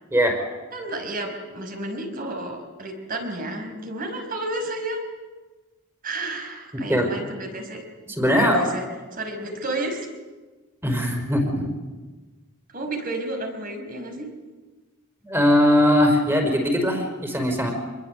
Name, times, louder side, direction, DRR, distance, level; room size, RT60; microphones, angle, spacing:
voice 1, 0.7-5.0 6.0-7.8 8.3-8.9 9.1-10.1 12.7-14.3, right 2 dB, 45° right, 5 dB, 5.2 m, -31 dB
voice 2, 8.1-8.6 10.8-11.7 15.3-17.7, equal, 10° right, 4 dB, 5.2 m, -20 dB
27.0 x 21.5 x 8.1 m, 1.3 s
head